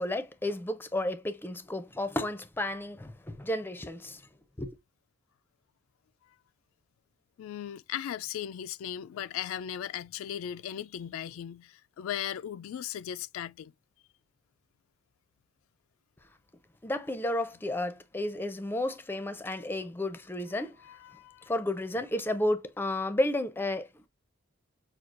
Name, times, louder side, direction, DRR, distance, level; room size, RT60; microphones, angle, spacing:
voice 1, 0.0-4.2 4.6-4.8 16.8-20.8 21.5-24.1, left 1 dB, 10° left, 0.4 m, -32 dB
voice 2, 7.4-13.7 20.8-21.5, left 10 dB, 85° left, 0.3 m, -37 dB
5.9 x 2.4 x 2.4 m
head